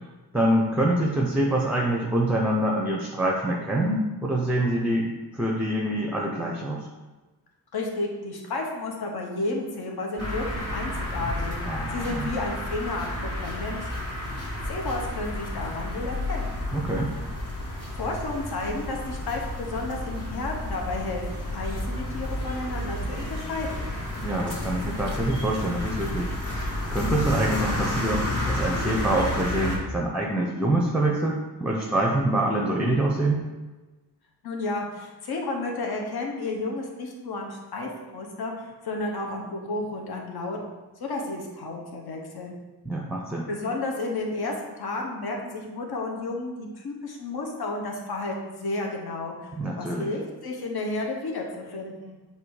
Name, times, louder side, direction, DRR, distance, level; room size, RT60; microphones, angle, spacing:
voice 1, 0.3-6.9 11.6-12.3 16.7-17.1 24.2-26.3 26.9-33.4 42.8-43.5 49.5-50.1, right 1 dB, 5° right, 0 dB, 0.5 m, -25 dB
voice 2, 7.7-11.5 11.9-14.1 14.6-16.5 17.9-23.9 34.4-42.5 43.5-52.2, left 2 dB, 70° left, 0 dB, 1.0 m, -32 dB
sound 1, 10.2-29.8, left 1 dB, 40° left, 1.9 m, -31 dB
7.5 x 2.7 x 4.7 m, 1.2 s
wide cardioid pair, 155°, 39 cm